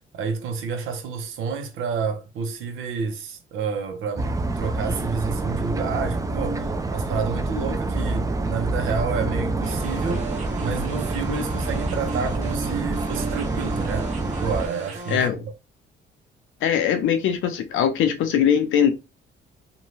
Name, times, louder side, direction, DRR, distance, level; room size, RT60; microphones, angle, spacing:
voice 1, 0.1-10.3 10.6-14.1 14.4-15.5, right 5 dB, 85° right, 0.7 m, -29 dB
sound 1, 4.2-14.7, right 2 dB, 15° right, 0.4 m, -27 dB
sound 2, 9.6-15.3, right 4 dB, 35° right, 0.8 m, -36 dB
voice 2, 15.1-15.5 16.6-18.9, left 8 dB, 80° left, 0.6 m, -21 dB
2.6 x 2.2 x 3.1 m
cardioid pair, 90°, 20 cm